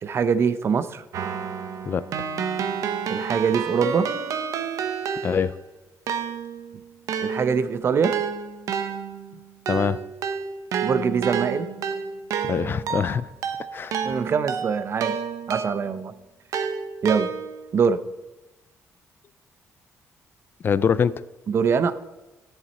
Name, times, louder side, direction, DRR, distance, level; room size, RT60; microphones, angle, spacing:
voice 1, 0.0-1.0 3.1-4.1 7.2-8.1 10.8-11.7 14.0-15.2 15.5-16.1 17.0-17.3 17.7-18.0 21.5-21.9, right 6 dB, 45° right, 13 dB, 0.6 m, -23 dB
Keyboard (musical), 1.1-5.7 6.1-16.0 16.5-17.7, right 7 dB, 75° right, 1.0 m, -30 dB
voice 2, 5.2-5.5 9.7-10.0 12.4-13.3 13.7-14.0 20.6-21.1, left 7 dB, 40° left, 17 dB, 0.4 m, -23 dB
11.0 x 7.4 x 4.2 m, 1.0 s
cardioid pair, 135°, 6 cm